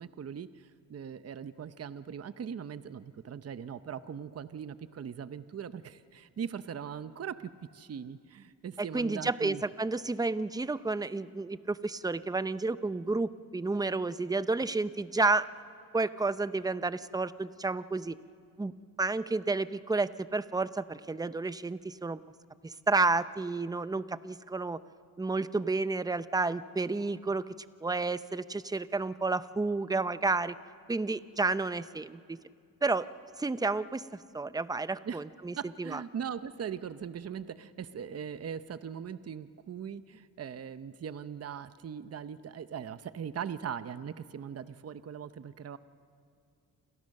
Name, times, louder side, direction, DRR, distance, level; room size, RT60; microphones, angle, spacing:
voice 1, 0.0-9.6 35.0-35.2 35.6-45.8, right 7 dB, 40° right, 12 dB, 0.8 m, -40 dB
voice 2, 8.9-15.5 15.9-18.2 18.6-18.7 19.0-22.2 22.6-24.8 25.2-27.5 27.8-30.6 30.9-32.4 32.8-33.1 33.4-34.0 34.3-36.0, right 3 dB, 10° right, 14 dB, 0.6 m, -31 dB
28.5 x 27.5 x 6.6 m, 2.3 s
cardioid pair, 100°, 36 cm